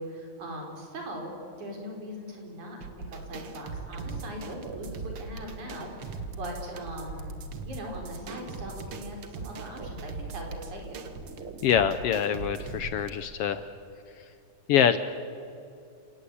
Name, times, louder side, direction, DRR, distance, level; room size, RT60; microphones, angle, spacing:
voice 1, 0.0-7.3 7.6-11.1, equal, 85° right, 1 dB, 5.9 m, -40 dB
sound 1, 2.8-13.1, right 4 dB, 50° right, 2.2 m, -39 dB
voice 2, 11.6-13.6 14.7-15.0, left 9 dB, 75° left, 12 dB, 1.4 m, -24 dB
29.5 x 18.0 x 8.5 m, 2.6 s
omnidirectional pair, 3.3 m